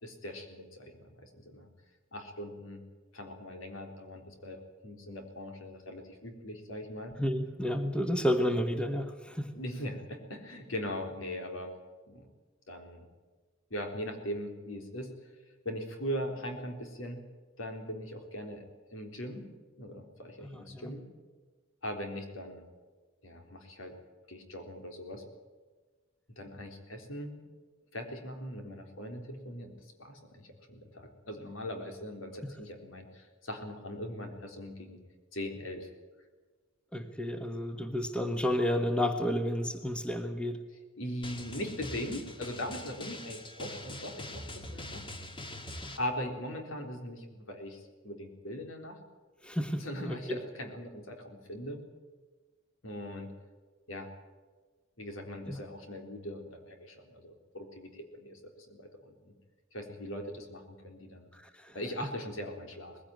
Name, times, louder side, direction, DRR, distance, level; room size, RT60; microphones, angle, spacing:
voice 1, 0.0-1.7 2.1-2.8 3.1-7.2 9.5-11.7 12.1-12.3 12.7-13.1 13.7-15.1 15.6-17.2 17.6-18.6 18.9-19.5 19.8-21.1 21.8-22.6 23.2-23.9 24.3-25.2 26.4-27.4 27.9-35.0 35.3-35.9 41.0-45.0 46.0-49.0 49.8-51.8 52.8-53.3 53.9-54.1 55.0-59.3 59.7-61.3 61.7-63.0, equal, 75° left, 4 dB, 3.9 m, -40 dB
voice 2, 7.2-9.5 20.4-20.9 36.9-40.6 49.4-50.4 55.5-55.6 61.4-61.7, equal, 5° left, 7 dB, 1.3 m, -31 dB
Drum, 41.2-46.0, left 1 dB, 25° left, 2.0 m, -43 dB
20.5 x 16.0 x 9.1 m, 1.4 s
head